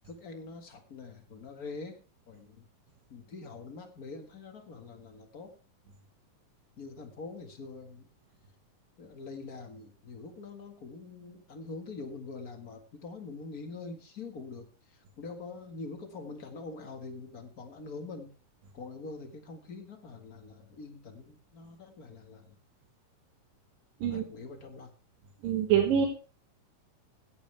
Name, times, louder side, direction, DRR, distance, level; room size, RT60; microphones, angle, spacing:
voice 1, 0.0-2.0 2.3-2.6 3.1-5.5 6.8-8.1 9.0-14.7 15.2-18.3 18.7-22.5 24.1-24.9, left 3 dB, 40° left, 5 dB, 1.3 m, -44 dB
voice 2, 25.4-26.1, right 8 dB, 80° right, 1 dB, 3.3 m, -25 dB
16.0 x 11.0 x 3.4 m, 0.37 s
omnidirectional pair, 4.0 m